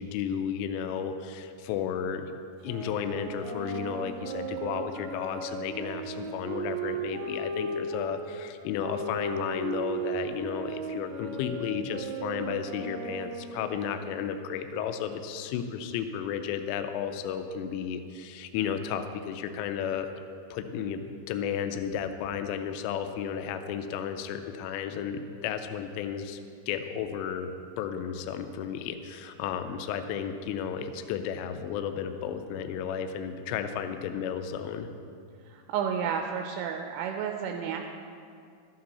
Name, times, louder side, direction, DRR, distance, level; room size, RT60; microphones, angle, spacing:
voice 1, 0.0-2.3 2.6-20.1 20.5-21.0 21.3-26.4 26.7-27.5 27.8-34.9, left 8 dB, 85° left, 8 dB, 3.1 m, -33 dB
sound 1, 2.6-8.1 8.8-14.4, right 4 dB, 70° right, 2.9 m, -36 dB
voice 2, 35.5-37.9, right 7 dB, 85° right, 4 dB, 3.0 m, -31 dB
12.5 x 8.6 x 4.2 m, 2.4 s
omnidirectional pair, 5.7 m